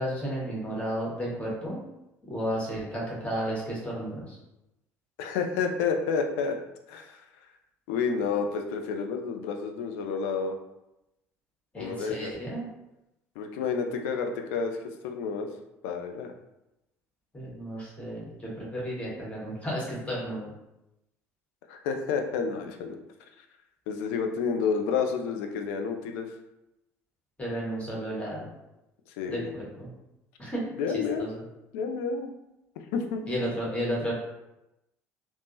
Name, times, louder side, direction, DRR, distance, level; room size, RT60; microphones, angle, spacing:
voice 1, 0.0-1.8 2.3-4.4 11.7-12.6 17.3-20.5 27.4-28.5 29.3-29.9 30.4-30.6 30.9-31.4 33.3-34.1, equal, 15° left, -5 dB, 1.3 m, -33 dB
voice 2, 5.2-6.6 6.9-7.2 7.9-10.6 11.8-12.3 13.4-14.8 15.0-15.5 15.8-16.3 21.7-22.9 23.9-26.3 29.2-29.5 30.8-31.3 31.7-32.3 32.9-33.3, left 5 dB, 65° left, 5 dB, 0.4 m, -30 dB
3.3 x 2.0 x 2.6 m, 0.92 s
figure-of-eight pair, 60°, 8 cm